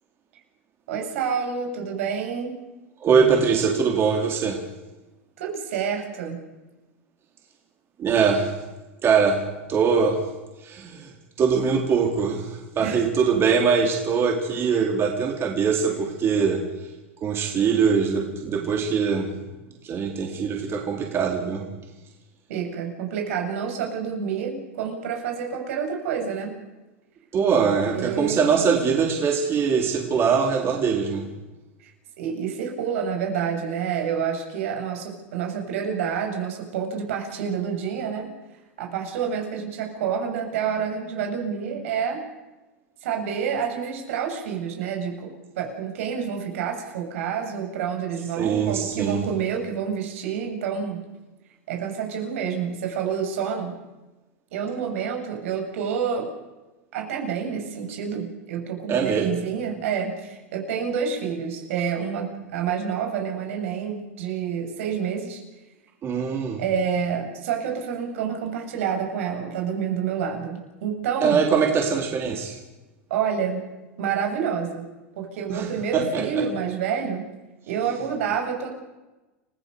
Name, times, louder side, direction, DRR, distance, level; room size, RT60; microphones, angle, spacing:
voice 1, 0.9-2.6 5.4-6.4 12.8-13.0 15.9-16.1 22.5-26.5 27.9-28.5 31.8-31.9 32.2-38.3 38.8-42.2 43.0-45.3 45.5-51.0 51.7-53.7 54.5-56.3 56.9-65.4 66.6-71.4 73.1-73.6 74.0-74.9 75.2-77.2 77.7-78.7, right 7 dB, 70° right, 2 dB, 7.2 m, -28 dB
voice 2, 3.0-4.6 8.0-8.5 9.0-9.4 9.7-10.2 10.6-11.1 11.4-16.6 17.2-19.3 19.8-21.7 27.3-31.3 48.4-49.2 58.9-59.4 66.0-66.6 71.2-72.6 75.5-76.4, right 6 dB, 30° right, 1 dB, 4.2 m, -22 dB
30.0 x 17.0 x 7.0 m, 1.1 s
hypercardioid pair, 110°, 7 cm